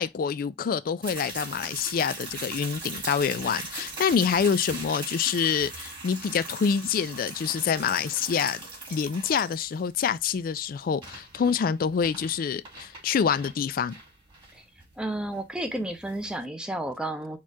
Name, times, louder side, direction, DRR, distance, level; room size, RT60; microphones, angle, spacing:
voice 1, 0.0-8.6 8.9-14.0, left 6 dB, 50° left, 0.3 m, -26 dB
sound 1, 1.0-16.4, right 2 dB, 25° right, 2.2 m, -40 dB
voice 2, 15.0-17.4, right 1 dB, 5° right, 0.6 m, -31 dB
4.3 x 2.4 x 4.6 m
head